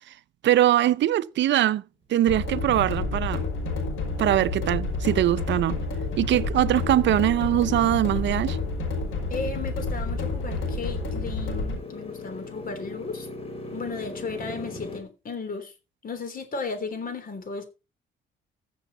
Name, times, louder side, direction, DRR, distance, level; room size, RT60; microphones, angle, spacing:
voice 1, 0.4-1.8 2.1-3.5 4.2-5.8 6.2-8.6, right 13 dB, 65° right, 0.6 m, -22 dB
sound 1, 2.3-11.8, left 3 dB, 90° left, 5.7 m, -29 dB
Motorcycle, 2.4-15.0, left 2 dB, 30° left, 3.3 m, -42 dB
voice 2, 9.3-13.3 13.7-15.7 16.0-17.7, left 4 dB, 45° left, 3.4 m, -35 dB
15.0 x 7.0 x 4.1 m
cardioid pair, 90°, 20 cm